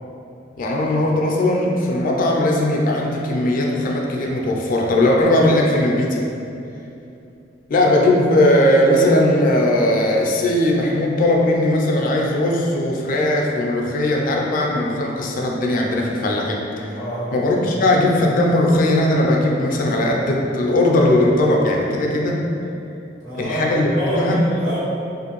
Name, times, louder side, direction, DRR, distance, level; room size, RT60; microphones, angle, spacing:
voice 1, 0.6-6.3 7.7-16.9 17.3-22.4 23.4-23.9 24.2-24.4, left 1 dB, 45° left, -1 dB, 0.3 m, -18 dB
voice 2, 16.9-18.0 23.2-24.8, equal, 85° right, -13 dB, 1.5 m, -27 dB
2.5 x 2.5 x 2.9 m, 2.7 s
head